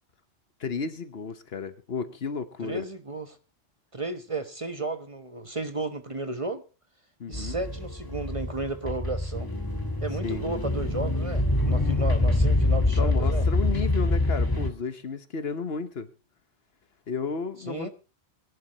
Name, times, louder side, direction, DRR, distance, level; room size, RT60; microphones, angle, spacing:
voice 1, 0.6-2.8 7.2-7.6 10.2-10.4 13.0-16.1 17.1-17.9, left 5 dB, 65° left, 1.3 m, -33 dB
voice 2, 2.6-3.4 3.9-6.6 7.3-9.5 10.0-13.5 17.6-17.9, right 2 dB, 30° right, 1.1 m, -33 dB
sound 1, 7.3-14.7, left 2 dB, 20° left, 1.7 m, -25 dB
22.5 x 11.0 x 3.0 m
omnidirectional pair, 1.1 m